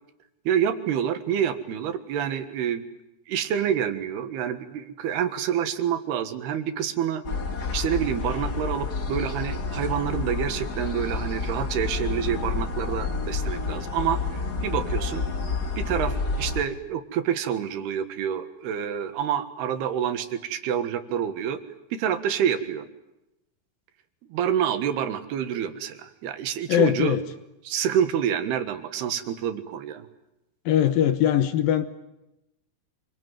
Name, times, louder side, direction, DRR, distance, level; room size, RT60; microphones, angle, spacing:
voice 1, 0.5-2.9 3.3-7.2 7.7-15.3 15.8-21.6 21.9-22.9 24.3-27.2 27.7-30.1, right 9 dB, 80° right, 9 dB, 3.6 m, -27 dB
sound 1, 7.2-16.6, left 4 dB, 40° left, 1.4 m, -29 dB
voice 2, 26.7-27.2 30.7-31.9, left 10 dB, 70° left, 11 dB, 2.7 m, -21 dB
26.0 x 24.0 x 9.4 m, 0.93 s
omnidirectional pair, 4.6 m